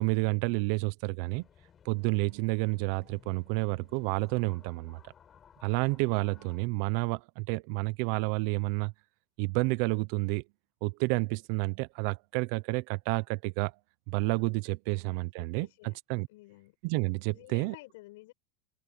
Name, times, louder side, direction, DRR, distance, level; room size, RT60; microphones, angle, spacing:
voice 1, 0.0-1.5 1.8-5.0 5.6-8.9 9.4-10.4 10.8-13.7 14.1-16.3 16.8-17.7, right 25 dB, 60° right, 0.8 m, -30 dB
sound 1, 1.2-6.7, left 8 dB, 25° left, 7.9 m, -59 dB
voice 2, 14.9-16.0 16.3-16.8 17.2-18.3, left 20 dB, 70° left, 6.6 m, -52 dB
open air
supercardioid pair, 135°, 0 cm